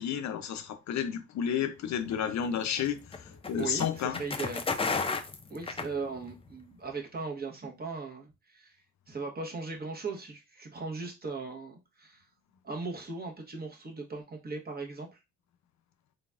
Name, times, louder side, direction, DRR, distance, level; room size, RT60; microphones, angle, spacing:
voice 1, 0.0-4.2, left 8 dB, 65° left, 0.6 m, -31 dB
sound 1, 2.0-6.5, left 4 dB, 20° left, 0.5 m, -34 dB
voice 2, 3.6-4.7 5.5-8.7 9.1-12.2 12.6-15.2, right 4 dB, 30° right, 1.1 m, -38 dB
4.0 x 3.4 x 2.4 m
cardioid pair, 90°, 30 cm